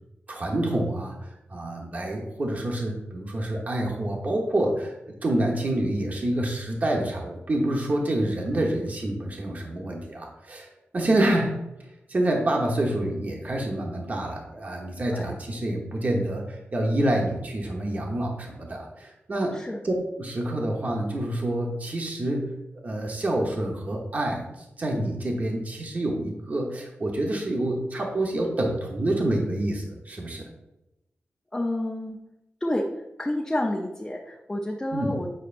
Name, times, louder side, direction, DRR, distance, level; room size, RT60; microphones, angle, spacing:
voice 1, 0.3-11.6 12.1-19.6 19.8-22.6 22.8-30.5 34.9-35.2, right 1 dB, 40° right, 0 dB, 1.0 m, -27 dB
voice 2, 11.2-11.5 15.1-15.4 19.5-19.8 31.5-32.2 32.6-32.9 33.2-35.3, left 1 dB, 15° left, -1 dB, 0.6 m, -29 dB
8.9 x 5.5 x 2.5 m, 0.92 s
wide cardioid pair, 160°, 4 cm